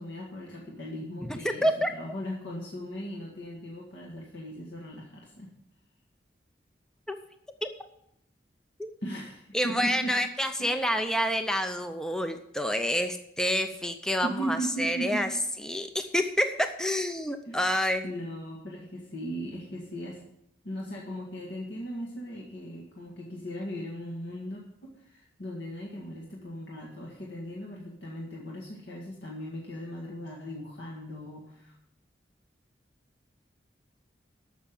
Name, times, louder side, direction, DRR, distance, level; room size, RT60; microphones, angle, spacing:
voice 1, 0.0-5.5 9.0-10.2 10.6-10.9 14.2-15.3 17.5-20.2 20.6-31.7, equal, 80° left, -2 dB, 1.9 m, -38 dB
voice 2, 1.2-1.9 7.1-7.2 7.6-7.7 8.8-8.9 9.5-15.3 15.6-18.1, equal, 5° left, 7 dB, 0.6 m, -28 dB
13.0 x 6.1 x 7.0 m, 0.76 s
head